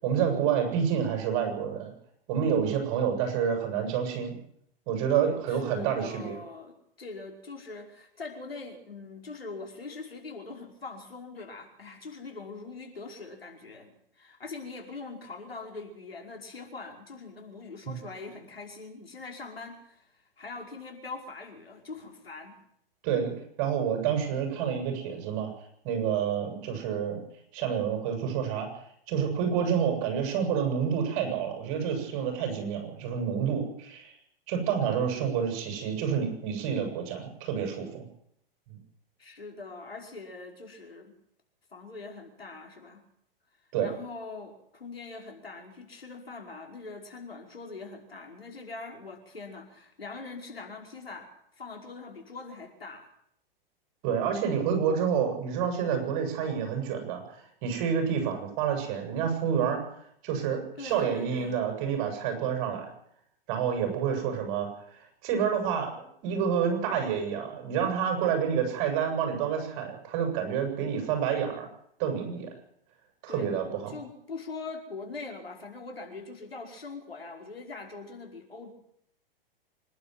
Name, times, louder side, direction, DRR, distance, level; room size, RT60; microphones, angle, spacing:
voice 1, 0.0-1.9 2.3-4.4 4.9-6.4 17.9-18.0 23.0-23.3 23.6-25.5 25.8-27.2 27.5-28.7 29.1-34.1 34.5-38.1 43.7-43.9 54.0-59.8 60.2-62.9 63.5-64.7 65.2-65.9 66.2-71.7 72.0-72.5 73.2-73.9, right 7 dB, 45° right, 4 dB, 7.5 m, -28 dB
voice 2, 5.5-22.6 39.2-41.1 41.7-43.0 43.8-51.3 51.6-53.1 60.8-61.6 73.3-78.7, left 3 dB, 80° left, 2 dB, 5.3 m, -42 dB
25.5 x 12.0 x 9.5 m, 0.73 s
figure-of-eight pair, 100°, 29 cm